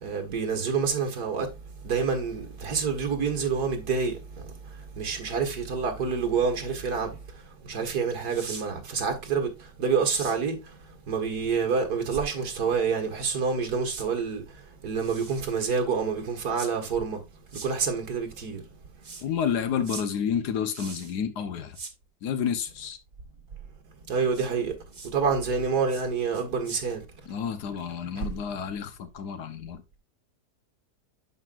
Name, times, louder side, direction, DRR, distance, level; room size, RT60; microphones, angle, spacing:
voice 1, 0.0-1.5 1.8-4.2 5.0-7.2 7.7-9.5 9.8-10.6 11.1-14.4 14.8-17.2 17.6-18.6 24.1-24.7 25.1-27.0, right 5 dB, 70° right, 2.3 m, -27 dB
sound 1, 8.3-8.7 10.0-10.4 12.1-12.2 13.9-14.1 15.0-15.6 16.6-16.7 17.5-17.7 19.0-19.3 19.8-20.1 20.7-21.2 21.7-21.9 24.3-24.5 24.9-25.1 25.9-26.1 26.3-26.8, right 4 dB, 30° right, 0.9 m, -41 dB
voice 2, 19.2-21.8 22.2-23.0 27.3-29.8, left 7 dB, 80° left, 1.5 m, -30 dB
11.0 x 5.4 x 2.5 m
omnidirectional pair, 1.7 m